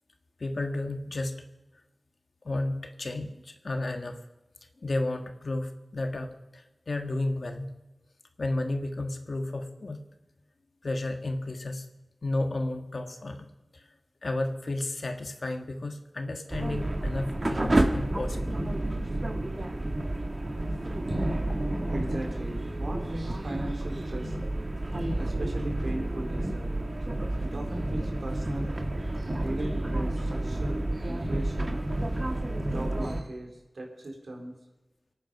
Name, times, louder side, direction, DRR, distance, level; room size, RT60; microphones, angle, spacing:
voice 1, 0.4-1.3 2.4-4.2 4.8-7.7 8.4-10.0 10.8-11.8 12.2-13.9 14.2-18.5, left 2 dB, 75° left, 5 dB, 1.6 m, -32 dB
sound 1, 16.5-33.2, right 1 dB, 45° right, 1.7 m, -30 dB
voice 2, 21.1-21.5 21.9-24.4 24.9-26.7 27.4-28.7 29.0-31.8 32.7-34.5, right 1 dB, 85° right, 2 dB, 3.6 m, -38 dB
25.0 x 8.9 x 5.4 m, 1.0 s
wide cardioid pair, 65°, 0 cm